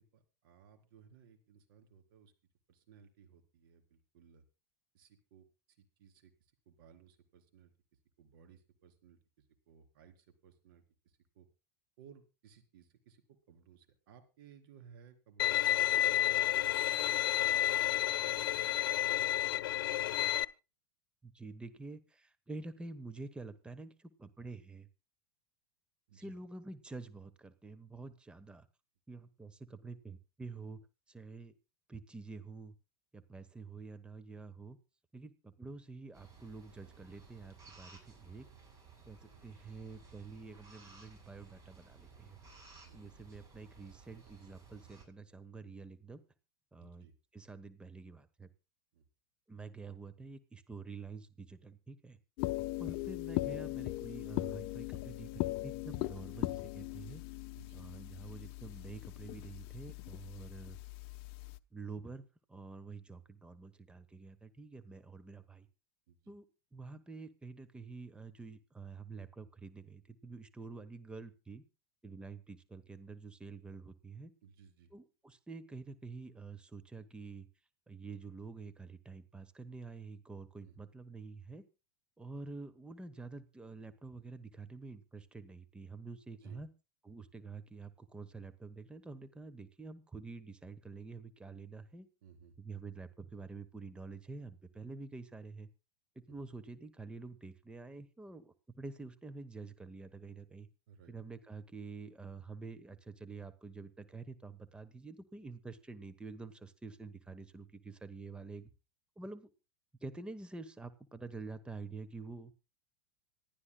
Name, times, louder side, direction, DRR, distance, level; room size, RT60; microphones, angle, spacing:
voice 1, 0.0-2.3 2.7-4.4 4.9-5.5 6.0-6.3 6.7-7.7 8.2-9.2 9.7-11.5 12.0-19.0 19.9-20.1 26.1-26.3 42.8-43.0 46.8-47.1 48.9-49.0 52.7-52.8 57.5-57.9 66.1-66.3 74.4-74.9 80.6-80.8 86.4-86.6 92.2-92.5 96.3-96.4 100.9-101.1, right 7 dB, 70° right, 6 dB, 3.9 m, -60 dB
Bowed string instrument, 15.4-20.4, left 13 dB, 75° left, 0.9 m, -30 dB
voice 2, 21.2-24.9 26.1-28.7 29.1-30.8 31.1-31.5 31.9-32.7 33.1-34.8 35.1-38.5 39.1-42.4 42.9-46.2 46.7-47.1 47.3-48.5 49.5-52.2 52.8-57.2 57.7-60.8 61.7-62.2 62.5-65.7 66.3-66.4 66.7-71.6 72.0-74.3 74.9-77.5 77.9-81.6 82.2-86.7 87.0-92.1 92.6-95.7 96.1-100.7 101.1-108.7 109.2-109.5 110.0-112.5, right 3 dB, 10° right, 12 dB, 1.1 m, -48 dB
sound 1, 36.1-45.1, right 4 dB, 30° right, 6.9 m, -57 dB
sound 2, 52.4-61.6, left 20 dB, 55° left, 0.9 m, -39 dB
26.0 x 11.5 x 2.3 m, 0.30 s
supercardioid pair, 125°, 12 cm